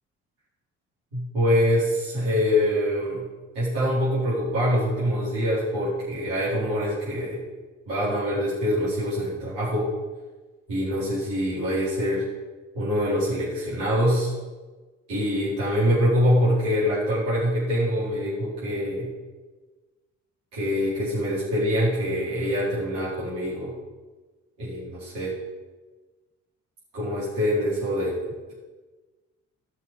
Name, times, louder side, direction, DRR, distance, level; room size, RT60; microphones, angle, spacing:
voice 1, 1.1-3.2 3.5-7.4 7.9-9.9 10.7-12.2 12.7-14.3 15.1-19.1 20.5-23.7 24.6-25.3 26.9-28.2, equal, 60° right, -11 dB, 4.5 m, -24 dB
18.0 x 6.1 x 5.4 m, 1.3 s
figure-of-eight pair, 50°, 37 cm